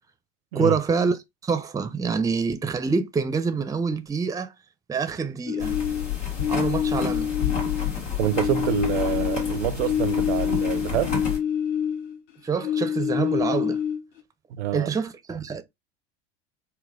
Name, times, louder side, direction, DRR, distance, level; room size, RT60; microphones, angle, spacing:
voice 1, 0.5-4.5 4.9-5.8 6.5-7.3 12.4-13.8 14.7-15.6, right 5 dB, 10° right, 0.5 m, -26 dB
sound 1, 5.5-8.0 8.3-12.2 12.5-14.2, left 8 dB, 60° left, 0.8 m, -27 dB
sound 2, 5.6-11.4, left 7 dB, 85° left, 1.6 m, -30 dB
voice 2, 8.2-11.1 14.5-14.9, right 12 dB, 70° right, 0.5 m, -26 dB
3.9 x 2.2 x 2.5 m
hypercardioid pair, 75°, 36 cm